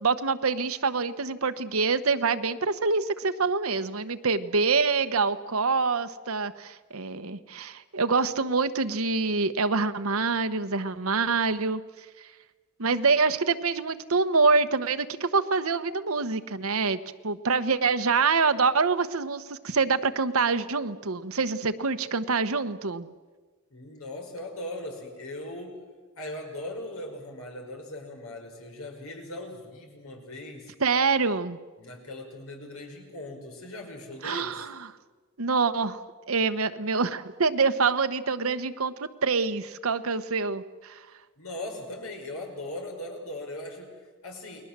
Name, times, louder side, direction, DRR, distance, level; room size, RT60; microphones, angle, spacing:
voice 1, 0.0-11.8 12.2-12.3 12.8-17.0 17.2-23.1 30.8-31.6 34.2-34.9 35.4-36.0 36.3-41.0, right 4 dB, 80° right, 10 dB, 1.1 m, -26 dB
voice 2, 23.7-25.9 26.2-30.7 31.8-34.7 41.4-44.6, left 1 dB, 90° left, 3 dB, 5.5 m, -39 dB
29.5 x 21.0 x 7.5 m, 1.4 s
head